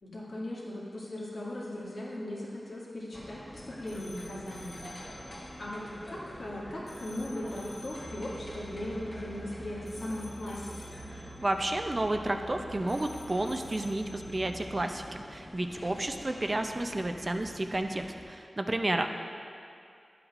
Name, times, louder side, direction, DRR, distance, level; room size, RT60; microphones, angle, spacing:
voice 1, 0.0-4.9 5.6-10.9 19.0-19.1, left 1 dB, 80° left, -7 dB, 2.1 m, -38 dB
sound 1, 3.1-18.2, equal, 15° left, 0.8 m, -47 dB
sound 2, 3.9-15.2, left 1 dB, 45° left, 1.9 m, -53 dB
Musical instrument, 7.9-14.9, right 2 dB, 85° right, 2.2 m, -48 dB
voice 2, 11.2-19.1, right 1 dB, 30° right, 5 dB, 0.5 m, -31 dB
12.0 x 7.9 x 2.5 m, 2.4 s
wide cardioid pair, 100°, 0 cm